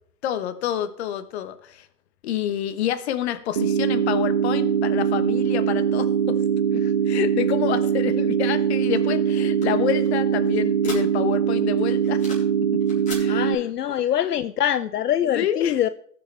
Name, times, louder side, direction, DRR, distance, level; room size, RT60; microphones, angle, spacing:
voice 1, 0.2-1.9 2.2-6.4 7.0-12.2 13.2-13.9 15.3-15.7, left 10 dB, 40° left, 11 dB, 1.2 m, -28 dB
sound 1, 3.6-13.6, right 8 dB, 35° right, 0.4 m, -22 dB
sound 2, 8.9-11.4 11.8-12.6 12.8-13.3, left 3 dB, 15° left, 4.2 m, -40 dB
voice 2, 13.3-15.9, left 10 dB, 70° left, 13 dB, 0.6 m, -24 dB
19.5 x 7.1 x 3.3 m, 0.64 s
figure-of-eight pair, 125°, 48 cm